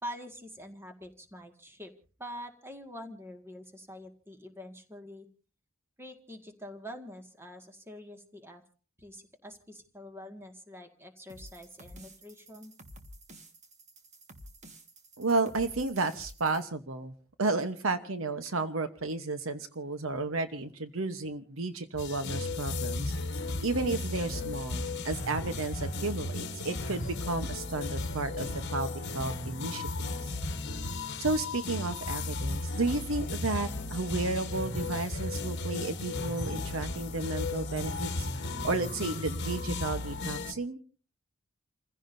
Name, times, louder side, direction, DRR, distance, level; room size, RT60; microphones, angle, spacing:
voice 1, 0.0-1.9 2.2-5.3 6.0-8.6 9.0-12.7, equal, 10° right, 4 dB, 1.9 m, -45 dB
sound 1, 11.3-16.6, right 1 dB, 35° right, 1.6 m, -51 dB
voice 2, 15.2-17.1 17.4-23.1 23.6-30.1 31.2-38.3 38.6-40.8, right 3 dB, 70° right, 9 dB, 1.0 m, -32 dB
sound 2, 22.0-40.5, left 2 dB, 55° left, 1.3 m, -35 dB
29.5 x 15.5 x 2.7 m, 0.38 s
head